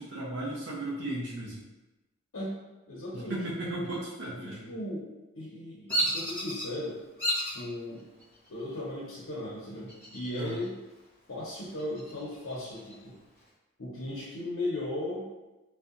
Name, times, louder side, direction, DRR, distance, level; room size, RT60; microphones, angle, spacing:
voice 1, 0.0-1.7 3.1-4.7 10.3-10.7, right 1 dB, 60° right, -5 dB, 0.5 m, -36 dB
voice 2, 2.9-3.4 4.4-7.0 7.5-8.1 8.5-10.8 11.3-13.2 13.8-15.3, left 1 dB, 75° left, -6 dB, 0.6 m, -37 dB
Bird vocalization bird call bird song, 5.9-6.7 7.2-7.6 8.2-8.7 9.9-10.6 11.0-11.1 11.6-13.0, right 1 dB, 10° left, 1.2 m, -32 dB
2.6 x 2.1 x 2.4 m, 1.0 s
head